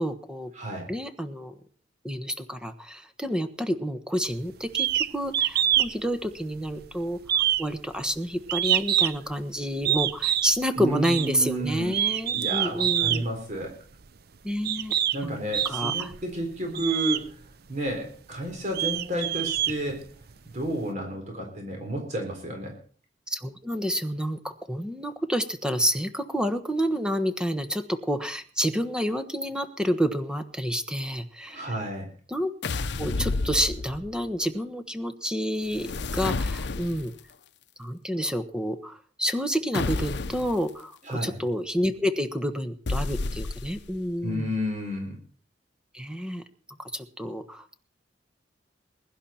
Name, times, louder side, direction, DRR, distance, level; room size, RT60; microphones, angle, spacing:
voice 1, 0.0-0.5 0.9-1.5 2.0-13.2 14.4-14.9 15.2-15.4 15.6-16.1 16.6-16.8 23.3-31.7 32.3-32.5 33.0-37.1 37.8-44.5 45.9-46.4 46.7-47.6, equal, 5° right, 10 dB, 1.2 m, -29 dB
voice 2, 0.6-0.9 10.8-12.0 12.3-13.8 15.1-17.4 17.7-20.0 20.5-22.8 31.5-32.1 41.1-41.4 44.2-45.2, right 1 dB, 45° right, 2 dB, 4.0 m, -31 dB
sound 1, 4.7-5.1 5.3-5.9 6.2-6.9 7.3-9.3 9.8-10.5 11.0-11.3 11.8-13.2 14.0-14.1 14.6-15.2 15.5-16.2 16.7-17.2 17.9-18.0 18.5-20.3, right 11 dB, 60° right, 0.7 m, -25 dB
sound 2, 32.6-34.2 35.7-37.2 39.7-40.6 42.9-44.0, left 3 dB, 65° left, 0.7 m, -30 dB
22.0 x 11.0 x 4.4 m, 0.43 s
head